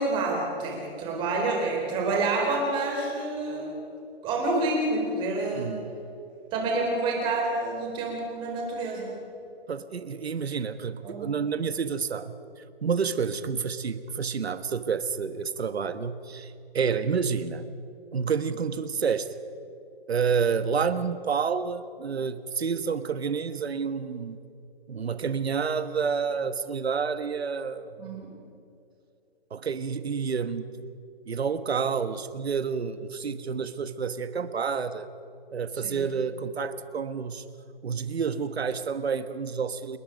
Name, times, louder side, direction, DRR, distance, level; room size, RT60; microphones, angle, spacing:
voice 1, 0.0-3.8 4.2-5.8 6.5-9.1 11.0-11.3 28.0-28.3 35.8-36.1, right 2 dB, 15° right, 0 dB, 4.2 m, -28 dB
voice 2, 5.5-5.9 9.7-12.4 12.8-17.7 18.1-19.3 20.1-24.4 24.9-28.2 29.5-30.7 31.3-35.1 35.5-37.4 37.8-40.0, right 6 dB, 85° right, 11 dB, 1.4 m, -29 dB
28.5 x 21.0 x 5.3 m, 2.6 s
hypercardioid pair, 165°, 31 cm